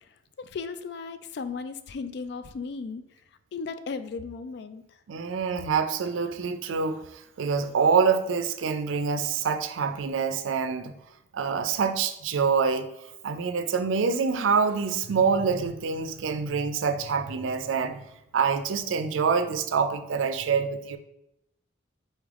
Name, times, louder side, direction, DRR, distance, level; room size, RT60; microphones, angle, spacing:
voice 1, 0.4-3.0 3.5-4.8, left 4 dB, 55° left, 11 dB, 0.3 m, -35 dB
voice 2, 5.1-11.0 11.3-12.9 13.2-18.0 18.3-21.0, right 5 dB, 75° right, 8 dB, 0.4 m, -26 dB
4.2 x 3.4 x 3.5 m, 0.84 s
head